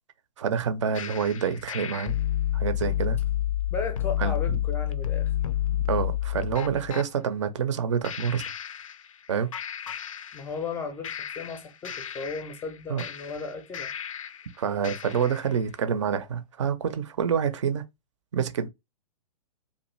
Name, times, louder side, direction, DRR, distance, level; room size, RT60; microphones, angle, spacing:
voice 1, 0.4-2.2 2.5-3.2 4.2-4.6 5.9-8.4 9.3-9.5 12.9-13.0 14.6-17.8 18.3-18.7, right 7 dB, 50° right, 0.6 m, -27 dB
sound 1, 0.9-7.1 8.0-9.3 9.5-10.7 11.0-14.5 14.8-15.5, left 12 dB, 60° left, 0.4 m, -30 dB
voice 2, 3.7-5.3 10.3-13.9, left 4 dB, 10° left, 0.5 m, -35 dB
2.6 x 2.4 x 3.0 m
figure-of-eight pair, 115°, 20 cm